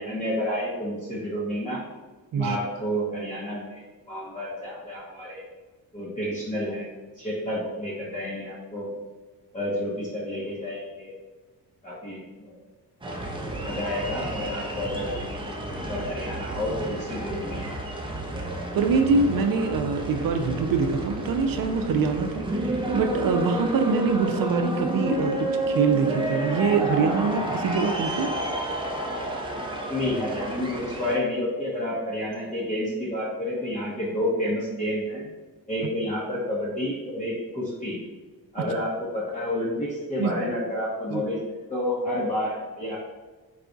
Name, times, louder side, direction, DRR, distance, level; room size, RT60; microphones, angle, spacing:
voice 1, 0.0-1.8 2.3-5.4 5.9-8.9 9.5-11.1 11.8-12.6 13.6-15.2 15.7-17.8 29.9-35.3 35.7-38.0 38.5-41.4 41.7-43.0, left 1 dB, 20° left, -6 dB, 0.8 m, -30 dB
sound 1, 13.0-31.2, right 1 dB, 15° right, 0.6 m, -30 dB
voice 2, 18.7-22.6 22.9-28.3 40.2-40.3 41.1-41.2, right 4 dB, 65° right, 7 dB, 0.5 m, -24 dB
4.8 x 2.3 x 3.8 m, 1.2 s
cardioid pair, 120°, 38 cm